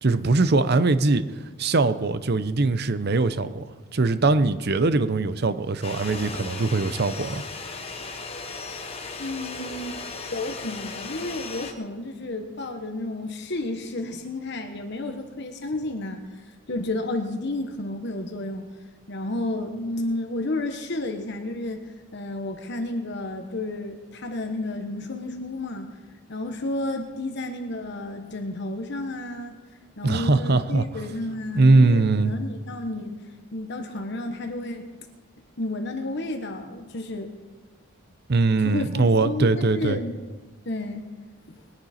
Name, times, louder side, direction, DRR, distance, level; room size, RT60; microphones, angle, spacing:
voice 1, 0.0-1.2 1.6-7.4 30.0-31.1 31.5-32.3 38.3-40.0, right 3 dB, 50° right, 12 dB, 0.7 m, -21 dB
sound 1, 5.8-11.7, left 4 dB, 30° left, 1.2 m, -36 dB
voice 2, 9.2-10.0 10.3-18.7 19.1-21.9 22.1-25.9 26.3-29.6 30.0-33.2 33.5-34.9 35.6-37.3 38.6-40.2 40.6-41.0, left 2 dB, 50° left, 5 dB, 1.1 m, -31 dB
21.0 x 10.5 x 4.3 m, 1.3 s
head